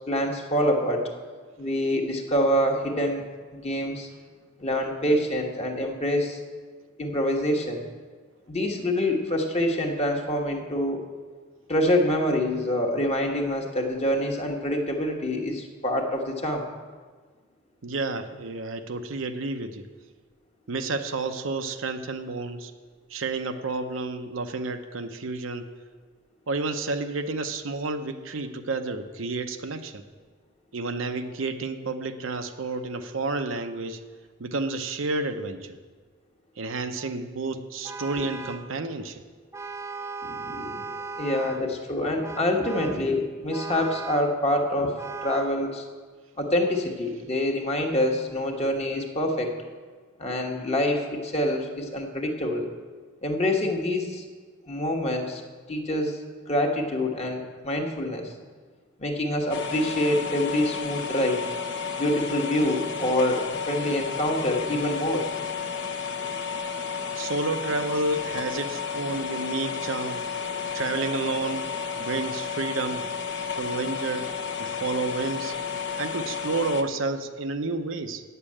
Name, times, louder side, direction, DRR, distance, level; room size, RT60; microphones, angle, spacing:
voice 1, 0.1-1.1 1.6-3.2 3.5-4.1 4.6-6.4 7.0-7.9 8.5-11.0 11.7-16.6 38.2-38.3 40.2-45.8 46.4-49.5 50.2-52.7 53.2-54.2 54.7-55.4 55.7-56.2 56.5-58.3 59.0-61.4 62.0-65.3, left 1 dB, 30° left, 2 dB, 1.2 m, -26 dB
voice 2, 17.8-19.9 20.7-22.7 23.1-25.7 26.5-30.0 30.7-34.0 34.4-35.8 36.6-39.2 67.2-70.3 70.7-71.7 72.0-73.1 73.6-74.3 74.6-75.5 76.0-78.2, right 3 dB, 75° right, 7 dB, 0.7 m, -30 dB
Vehicle horn car horn honking, 37.8-38.7 39.5-41.7 42.2-43.1 43.5-44.4 45.0-45.6, right 4 dB, 15° right, 0.4 m, -37 dB
sound 1, 59.5-76.8, left 6 dB, 60° left, 0.8 m, -32 dB
8.8 x 6.9 x 8.5 m, 1.5 s
head